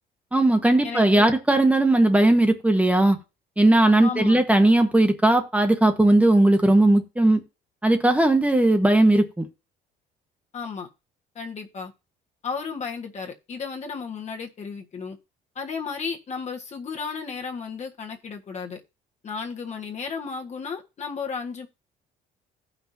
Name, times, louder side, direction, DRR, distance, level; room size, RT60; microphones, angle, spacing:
voice 1, 0.3-3.2 3.6-7.4 7.8-9.4, right 1 dB, 10° right, 1.1 m, -18 dB
voice 2, 0.8-1.4 4.0-4.4 10.5-10.9 11.3-11.9 12.4-15.2 15.5-18.8 19.2-21.7, left 5 dB, 40° left, 1.6 m, -33 dB
16.0 x 5.8 x 2.8 m
cardioid pair, 110°, 17 cm